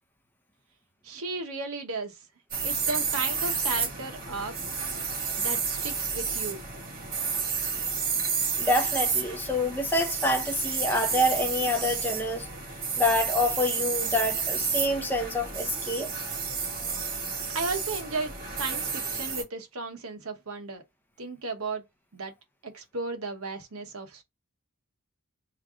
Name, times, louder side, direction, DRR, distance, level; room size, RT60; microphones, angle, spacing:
voice 1, 1.0-2.2 2.6-4.5 5.4-6.7 17.5-20.8 21.2-21.8 22.1-22.3 22.6-24.2, right 3 dB, 70° right, 0.9 m, -35 dB
sound 1, 2.5-19.4, right 5 dB, 40° right, 1.7 m, -31 dB
voice 2, 8.6-12.5 13.0-16.1, left 1 dB, 10° left, 0.7 m, -27 dB
3.3 x 2.4 x 3.6 m
head